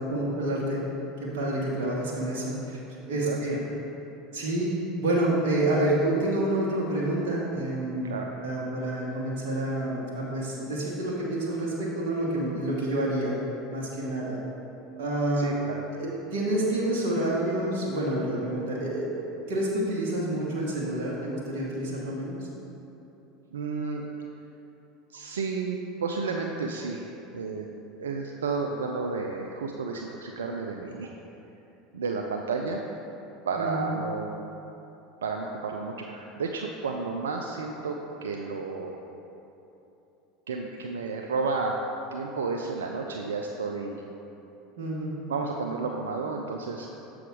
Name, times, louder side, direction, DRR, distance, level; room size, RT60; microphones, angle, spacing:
voice 1, 0.1-0.8 1.2-2.8 3.1-3.6 4.3-4.7 5.0-8.1 8.4-13.3 13.7-14.4 15.0-15.5 15.9-19.1 19.5-22.5 33.6-33.9 44.8-45.1, right 1 dB, 65° right, -5 dB, 1.2 m, -28 dB
voice 2, 3.1-3.6 8.0-8.3 15.4-15.9 23.5-24.1 25.1-27.7 28.0-31.1 31.9-32.8 33.5-34.3 35.2-38.0 38.2-39.0 40.5-41.7 42.1-44.0 45.3-46.9, right 4 dB, 80° right, 1 dB, 0.4 m, -32 dB
6.9 x 4.9 x 4.7 m, 3.0 s
hypercardioid pair, 80°, 0 cm